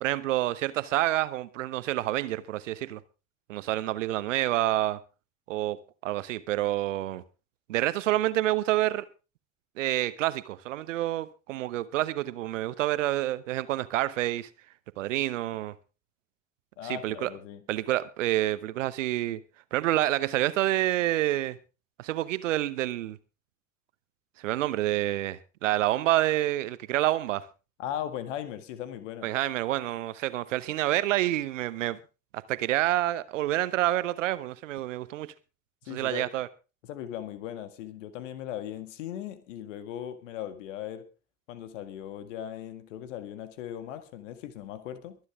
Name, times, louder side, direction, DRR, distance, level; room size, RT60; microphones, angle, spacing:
voice 1, 0.0-3.0 3.5-5.0 5.5-7.2 7.7-9.1 9.8-14.5 15.0-15.7 16.8-17.3 17.7-19.4 19.7-21.6 22.0-23.2 24.4-27.4 29.2-32.0 32.3-35.3 35.9-36.5, right 15 dB, 75° right, 1.0 m, -28 dB
voice 2, 16.8-17.6 27.8-29.3 35.8-36.3 36.8-41.1 41.5-45.2, left 10 dB, 70° left, 1.8 m, -38 dB
23.0 x 9.6 x 3.6 m
figure-of-eight pair, 55°, 38 cm